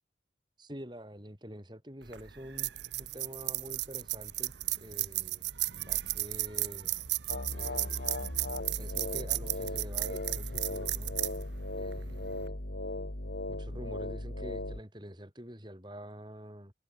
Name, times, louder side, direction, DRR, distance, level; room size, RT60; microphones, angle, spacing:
voice 1, 0.6-2.7 3.0-5.5 5.8-6.9 7.5-8.1 8.8-11.1 11.7-12.6 13.5-16.7, equal, 25° right, 7.9 m, -47 dB
sound 1, 2.0-12.5, right 16 dB, 85° right, 1.2 m, -35 dB
sound 2, 7.3-14.8, left 1 dB, 80° left, 3.1 m, -37 dB
head